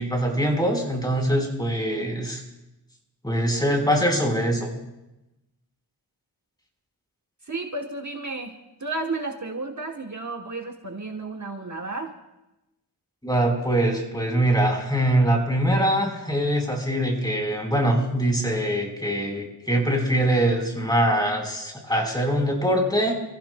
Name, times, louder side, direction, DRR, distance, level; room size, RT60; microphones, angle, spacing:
voice 1, 0.0-2.4 3.2-4.7 13.2-23.1, right 1 dB, 10° left, 1 dB, 4.1 m, -23 dB
voice 2, 7.4-12.1, right 3 dB, 45° right, 3 dB, 1.1 m, -32 dB
30.0 x 15.5 x 2.2 m, 0.96 s
wide cardioid pair, 70°, 40 cm